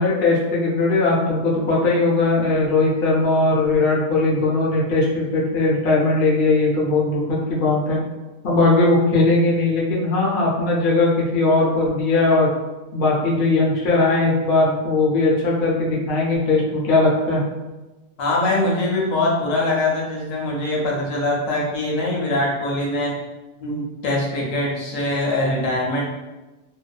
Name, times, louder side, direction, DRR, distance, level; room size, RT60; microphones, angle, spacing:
voice 1, 0.0-8.0 8.4-12.5 12.9-17.4, left 2 dB, 55° left, -4 dB, 0.7 m, -19 dB
voice 2, 18.2-23.1 23.6-26.0, left 2 dB, 75° left, -2 dB, 1.0 m, -22 dB
2.6 x 2.2 x 2.2 m, 1.1 s
omnidirectional pair, 1.4 m